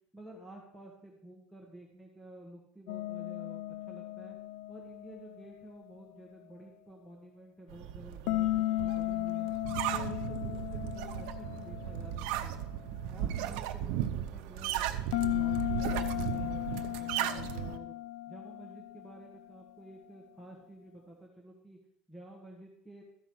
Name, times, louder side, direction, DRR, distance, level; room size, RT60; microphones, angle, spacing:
voice 1, 0.1-4.4 4.7-9.5 9.9-12.1 12.4-12.6 13.1-17.9 18.3-21.8 22.1-23.0, right 1 dB, 5° left, -1 dB, 1.3 m, -51 dB
sound 1, 2.9-5.9 8.3-12.7 15.1-19.6, left 16 dB, 80° left, 0.4 m, -36 dB
sound 2, 7.7-17.8, right 11 dB, 75° right, 0.8 m, -36 dB
13.5 x 5.1 x 6.2 m, 0.74 s
cardioid pair, 170°, 4 cm